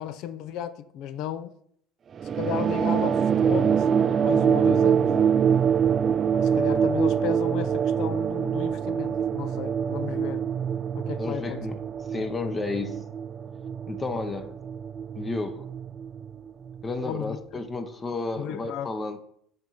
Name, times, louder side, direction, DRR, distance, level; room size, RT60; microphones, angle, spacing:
voice 1, 0.0-1.5 2.3-5.4 6.4-10.4 10.9-11.7 17.0-17.6 18.4-18.9, left 10 dB, 60° left, 0.5 m, -34 dB
sound 1, 2.2-17.1, right 7 dB, 35° right, 0.3 m, -25 dB
voice 2, 11.2-11.8 12.1-13.0 13.9-14.6 15.2-15.7 16.8-19.2, left 3 dB, 25° left, 0.8 m, -32 dB
5.3 x 3.9 x 5.4 m
supercardioid pair, 95°, 0 cm